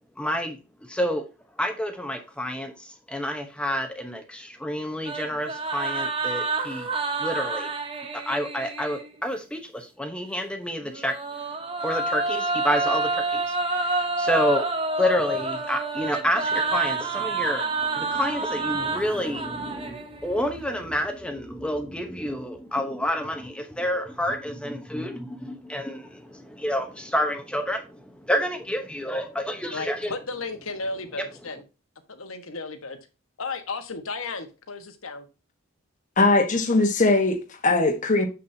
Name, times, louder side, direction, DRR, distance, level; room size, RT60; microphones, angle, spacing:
voice 1, 0.2-1.3 1.6-6.9 7.2-7.7 8.1-11.1 11.8-14.7 15.0-30.1, equal, 5° left, 0.9 m, -29 dB
sound 1, 5.1-9.1 10.9-20.4, right 3 dB, 25° right, 1.0 m, -28 dB
voice 2, 29.7-31.6 32.1-33.0 33.4-35.2, left 3 dB, 75° left, 1.4 m, -34 dB
voice 3, 36.2-38.3, left 2 dB, 35° left, 1.2 m, -20 dB
7.4 x 6.8 x 2.7 m
head